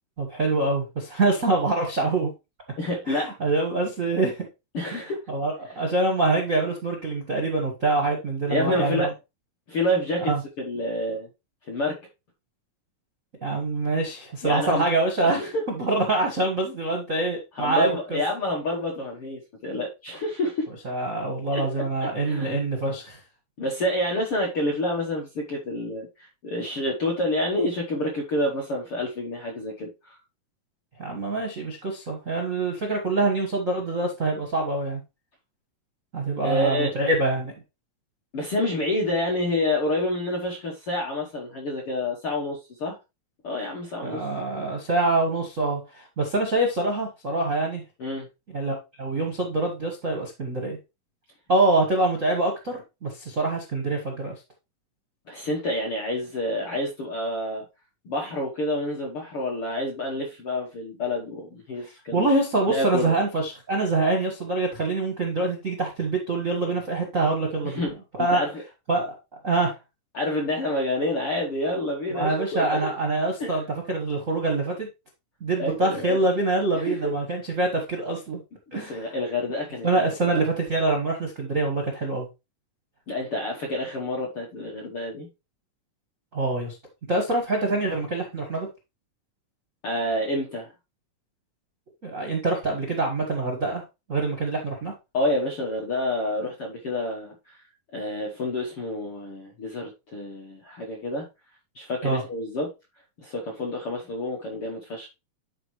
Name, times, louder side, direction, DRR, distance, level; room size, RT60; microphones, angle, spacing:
voice 1, 0.2-2.3 3.1-4.5 5.3-9.1 10.3-10.4 13.4-15.5 15.8-18.2 20.8-23.2 31.0-35.0 36.1-37.5 44.0-47.8 48.5-50.8 51.5-54.3 61.8-67.9 68.2-68.4 68.9-69.1 69.4-69.7 72.1-74.9 75.4-78.4 78.7-79.1 79.8-82.3 86.3-86.7 87.1-88.7 92.0-93.8 94.1-94.9 102.0-102.2, right 2 dB, 75° right, 0.7 m, -25 dB
voice 2, 2.8-3.3 4.7-5.2 8.5-9.1 9.7-11.3 11.7-12.0 14.4-14.8 15.2-15.6 17.6-20.7 21.5-21.7 22.0-22.6 23.6-30.1 36.4-36.9 38.3-43.0 43.4-44.2 48.0-48.3 55.3-57.6 58.0-62.2 62.7-63.1 67.6-68.6 70.1-72.8 73.4-73.5 75.6-76.2 76.8-77.1 78.7-80.4 83.1-85.3 89.8-90.7 95.1-97.6 97.9-101.3 101.7-102.7 103.2-105.1, left 1 dB, 65° left, 1.3 m, -28 dB
11.0 x 4.3 x 3.2 m
omnidirectional pair, 4.2 m